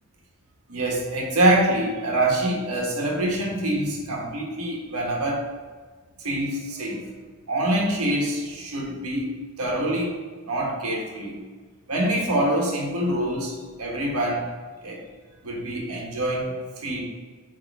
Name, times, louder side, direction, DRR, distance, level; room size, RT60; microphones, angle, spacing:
voice 1, 0.7-5.5 6.2-7.1 7.5-10.2 10.4-11.4 11.9-14.5 14.8-15.0 15.4-17.0, right 1 dB, 85° right, -2 dB, 1.5 m, -25 dB
8.2 x 3.7 x 3.5 m, 1.5 s
head